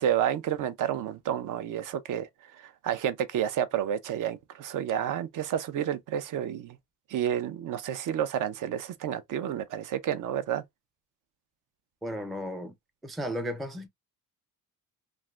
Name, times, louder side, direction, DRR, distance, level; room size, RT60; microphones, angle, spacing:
voice 1, 0.0-2.3 2.6-6.8 7.1-10.6, right 10 dB, 60° right, 0.5 m, -30 dB
voice 2, 12.0-12.7 13.0-13.9, equal, ahead, 0.3 m, -34 dB
3.2 x 2.5 x 2.3 m
cardioid pair, 155°, 36 cm